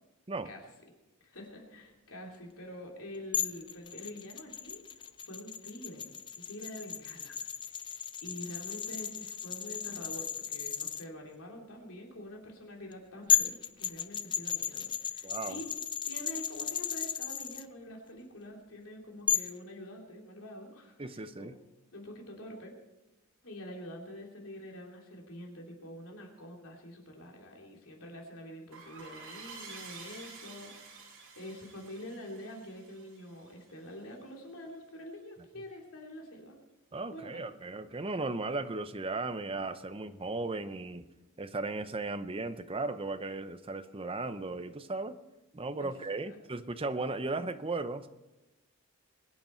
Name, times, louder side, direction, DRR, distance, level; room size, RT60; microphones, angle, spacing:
voice 1, 1.2-6.1 6.4-7.4 7.7-15.7 16.0-21.5 21.9-22.8 23.4-36.6 37.1-37.5 45.8-45.9 46.2-46.4, equal, 75° left, 0 dB, 3.0 m, -46 dB
sound 1, 3.3-11.0 12.9-13.0 13.3-17.6 19.3-19.6, left 8 dB, 20° left, 0.4 m, -34 dB
voice 2, 15.2-15.6 21.0-21.5 36.9-41.1 41.4-45.2 45.5-48.1, right 3 dB, 25° right, 10 dB, 0.7 m, -36 dB
sound 2, 28.7-34.0, right 4 dB, 65° right, 3.1 m, -50 dB
22.0 x 9.6 x 4.5 m, 1.0 s
head